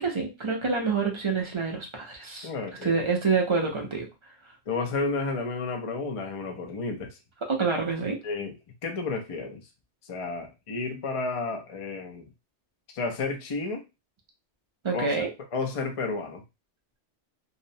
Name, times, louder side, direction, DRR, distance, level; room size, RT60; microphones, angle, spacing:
voice 1, 0.0-2.5 2.8-4.1 7.5-8.2 14.8-15.3, right 4 dB, 40° right, 0.4 m, -27 dB
voice 2, 2.4-3.0 4.7-7.2 8.2-8.5 8.8-9.6 10.1-12.3 12.9-13.8 14.9-15.1 15.5-16.4, left 3 dB, 45° left, 0.4 m, -31 dB
2.7 x 2.0 x 2.6 m
omnidirectional pair, 1.2 m